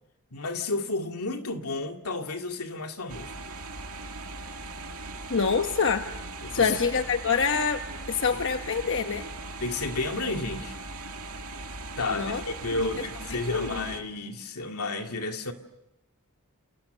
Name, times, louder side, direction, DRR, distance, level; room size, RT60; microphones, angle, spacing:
voice 1, 0.3-3.4 6.4-6.8 9.6-10.8 12.0-15.5, left 3 dB, 85° left, 2.4 m, -32 dB
sound 1, 3.1-14.0, right 2 dB, 75° right, 2.3 m, -39 dB
voice 2, 5.3-6.0 6.5-7.8 8.1-9.3 12.1-12.4 12.8-13.0 13.3-13.9, left 5 dB, 60° left, 1.1 m, -26 dB
29.0 x 28.5 x 6.8 m
head